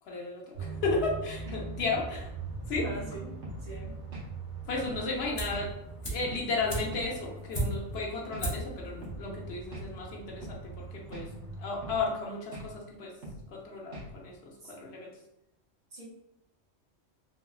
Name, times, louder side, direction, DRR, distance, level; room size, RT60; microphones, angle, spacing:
voice 1, 0.0-2.3 2.7-2.9 4.6-5.7 6.0-11.3 11.6-13.1 13.5-15.1, left 3 dB, 70° left, -2 dB, 0.9 m, -34 dB
sound 1, 0.5-12.0, right 3 dB, 10° right, 1.1 m, -42 dB
voice 2, 2.7-3.3 3.6-3.9 14.6-14.7 15.9-16.0, right 1 dB, 40° right, -4 dB, 0.7 m, -41 dB
sound 2, 3.4-3.6 4.1-4.3 4.8-5.0 5.5-5.7 6.2-6.4 6.9-7.1 7.6-7.8 8.3-8.5 9.0-9.2 9.7-9.9 10.4-10.6 11.1-11.3 11.8-12.0 12.5-12.7 13.2-13.4 13.9-14.1, right 1 dB, 75° right, 1.1 m, -42 dB
sound 3, 5.4-5.7 6.0-8.0 8.4-8.8 9.0-9.1, right 1 dB, 30° left, 0.6 m, -34 dB
3.4 x 2.2 x 2.3 m, 0.82 s
omnidirectional pair, 1.2 m